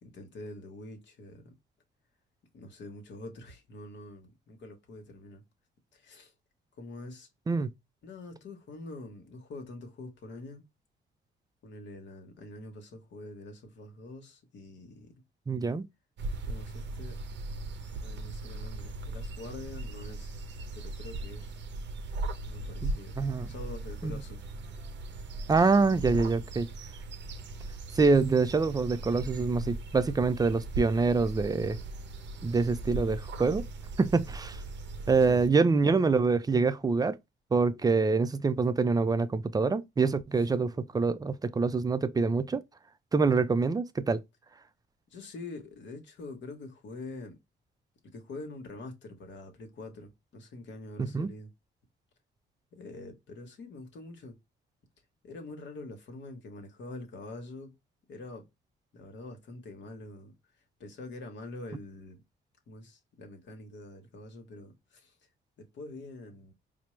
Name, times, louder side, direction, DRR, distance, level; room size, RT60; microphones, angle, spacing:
voice 1, 0.0-1.5 2.5-5.4 5.9-6.3 6.8-7.3 8.0-10.7 11.6-15.1 16.4-17.2 18.0-20.3 20.7-21.6 22.5-23.2 23.5-24.4 35.3-35.4 40.4-40.5 45.1-47.4 48.1-51.5 52.7-54.4 55.2-57.7 58.1-58.5 58.9-60.3 60.8-62.2 62.7-65.1 65.6-66.5, left 2 dB, 65° left, 1.0 m, -45 dB
voice 2, 15.5-15.9 22.8-23.5 24.0-24.2 25.5-26.7 28.0-31.8 32.4-33.6 34.0-34.6 35.1-37.2 37.5-42.6 43.1-44.2 51.0-51.3, right 4 dB, 20° right, 0.3 m, -25 dB
sound 1, 16.2-35.5, right 2 dB, 65° right, 0.6 m, -39 dB
4.4 x 2.0 x 3.0 m
cardioid pair, 90°, 20 cm